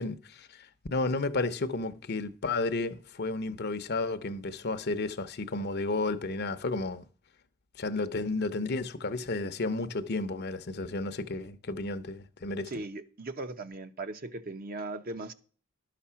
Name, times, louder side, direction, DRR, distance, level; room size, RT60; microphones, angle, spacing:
voice 1, 0.0-7.0 7.8-12.7, left 3 dB, 50° left, 0.8 m, -32 dB
voice 2, 12.7-15.3, right 2 dB, 45° right, 0.8 m, -38 dB
12.0 x 5.9 x 5.7 m
head